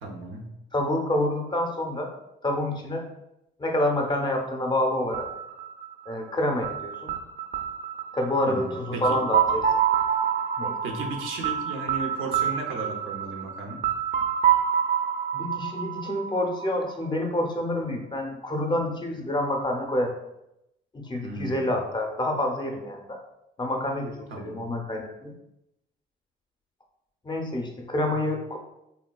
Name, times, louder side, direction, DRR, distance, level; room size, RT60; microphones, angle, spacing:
voice 1, 0.0-0.5 8.4-9.2 10.8-13.8 21.2-21.8 24.3-24.7 28.1-28.3, right 2 dB, 80° right, 2 dB, 0.6 m, -35 dB
voice 2, 0.7-2.1 2.4-3.0 3.6-5.3 6.1-7.1 8.1-9.6 10.6-10.8 15.3-20.1 20.9-23.2 23.6-25.3 27.2-28.6, left 1 dB, 20° left, 2 dB, 0.5 m, -27 dB
sound 1, 5.1-16.9, right 8 dB, 40° right, 0.4 m, -27 dB
3.5 x 2.3 x 2.2 m, 0.86 s
cardioid pair, 90°, 20 cm